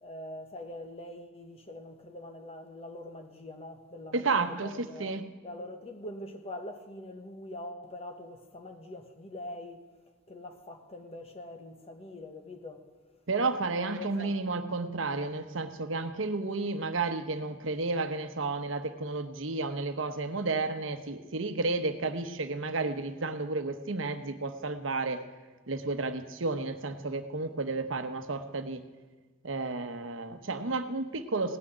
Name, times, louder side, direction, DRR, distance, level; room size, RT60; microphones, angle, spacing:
voice 1, 0.0-5.2 5.4-9.9 10.3-12.8 13.6-14.5, left 1 dB, 30° left, 1.3 m, -44 dB
voice 2, 4.1-5.3 13.3-25.2 25.7-28.8 29.4-31.6, right 3 dB, 75° right, 1.0 m, -32 dB
17.5 x 6.2 x 9.9 m
head